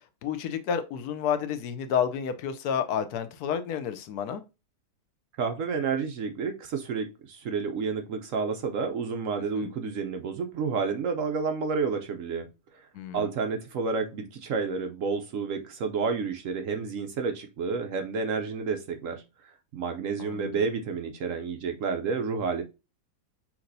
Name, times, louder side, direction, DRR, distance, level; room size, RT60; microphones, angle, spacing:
voice 1, 0.2-4.4 9.6-9.7 12.9-13.3 20.2-20.5, left 8 dB, 75° left, 1.1 m, -30 dB
voice 2, 5.4-12.5 13.1-19.2 19.7-22.6, right 5 dB, 65° right, 0.9 m, -30 dB
5.8 x 2.9 x 2.6 m
omnidirectional pair, 1.7 m